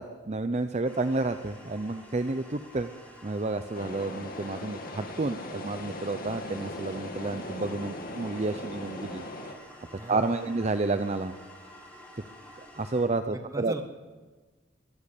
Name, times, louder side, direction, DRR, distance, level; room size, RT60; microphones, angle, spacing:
voice 1, 0.0-2.9 3.2-9.2 10.1-11.3 12.8-13.7, right 3 dB, 35° right, 9 dB, 0.7 m, -30 dB
sound 1, 0.8-13.1, left 1 dB, 10° left, 4.6 m, -50 dB
sound 2, 3.7-9.5, left 1 dB, 50° left, 2.3 m, -39 dB
voice 2, 9.9-10.5 13.3-13.8, right 1 dB, 15° right, 7 dB, 1.4 m, -39 dB
22.0 x 14.0 x 8.4 m, 1.4 s
head